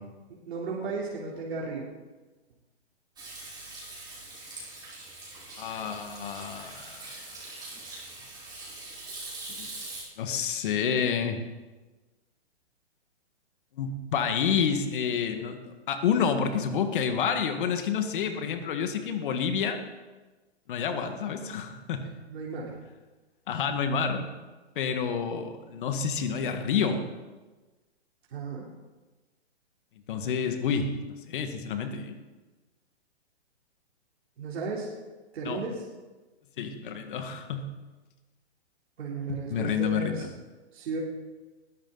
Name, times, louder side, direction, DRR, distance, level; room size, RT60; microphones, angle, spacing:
voice 1, 0.5-1.9 22.3-22.8 28.3-28.7 34.4-34.9 35.3-35.8 39.0-40.3 40.7-41.0, right 4 dB, 65° right, -4 dB, 3.6 m, -34 dB
Hands / Sink (filling or washing), 3.2-10.0, right 2 dB, 10° right, 4.7 m, -42 dB
voice 2, 5.6-7.1 9.6-9.7 10.2-11.4 13.8-19.8 20.7-22.1 23.5-24.3 24.8-27.1 30.1-30.9 31.3-32.2 35.4-35.6 36.6-37.7 39.3-40.3, left 6 dB, 50° left, 6 dB, 1.9 m, -29 dB
20.0 x 14.0 x 4.0 m, 1.2 s
hypercardioid pair, 150°, 34 cm